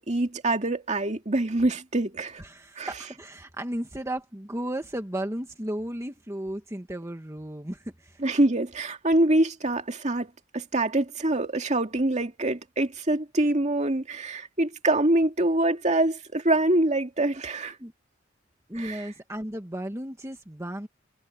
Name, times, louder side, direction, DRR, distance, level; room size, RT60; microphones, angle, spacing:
voice 1, 0.0-2.4 2.8-2.9 8.2-17.8 18.8-19.0, right 1 dB, 40° right, 2.2 m, -25 dB
voice 2, 2.4-8.2 17.8-17.9 18.7-20.9, right 1 dB, 15° right, 1.6 m, -34 dB
head